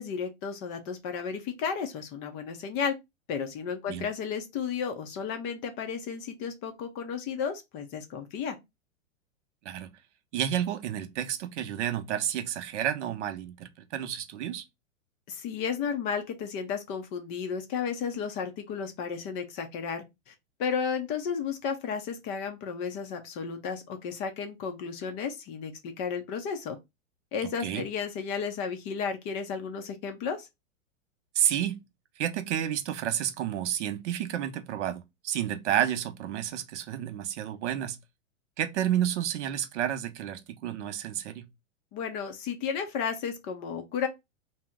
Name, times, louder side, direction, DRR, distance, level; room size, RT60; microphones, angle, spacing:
voice 1, 0.0-2.9 3.3-8.6 15.3-20.3 20.6-26.8 27.3-30.5 41.9-44.1, left 6 dB, 30° left, 0.5 m, -33 dB
voice 2, 10.3-14.6 27.6-27.8 31.3-31.8 32.2-38.0 38.6-41.5, right 11 dB, 60° right, 0.6 m, -30 dB
2.8 x 2.0 x 3.4 m
hypercardioid pair, 130°, 40 cm